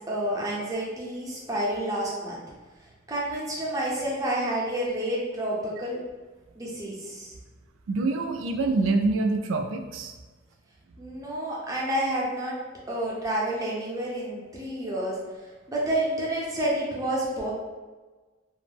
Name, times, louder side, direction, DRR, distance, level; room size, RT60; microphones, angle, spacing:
voice 1, 0.0-2.4 3.1-6.0 6.6-7.3 11.0-12.6 12.9-15.2 15.7-17.5, right 1 dB, 15° right, -5 dB, 0.6 m, -29 dB
voice 2, 7.9-10.1, right 3 dB, 85° right, 4 dB, 0.3 m, -25 dB
2.4 x 2.0 x 3.3 m, 1.3 s
head